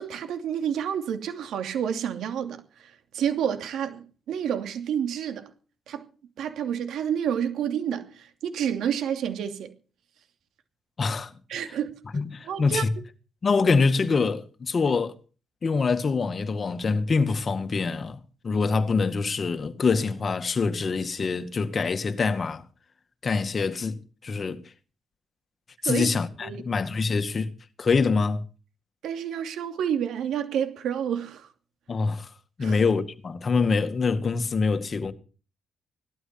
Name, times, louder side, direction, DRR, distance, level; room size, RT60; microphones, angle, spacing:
voice 1, 0.0-5.5 5.9-6.1 6.4-9.7 11.5-12.0 12.5-12.8 25.8-26.1 26.4-26.6 29.0-31.5 32.6-32.8, right 8 dB, 75° right, 2.7 m, -29 dB
voice 2, 11.0-11.3 12.1-12.9 13.4-15.2 15.6-22.6 23.2-24.6 25.8-27.5 27.8-28.4 31.9-32.3 32.6-35.1, left 4 dB, 40° left, 2.0 m, -25 dB
18.0 x 12.5 x 6.0 m
cardioid pair, 90°, 0 cm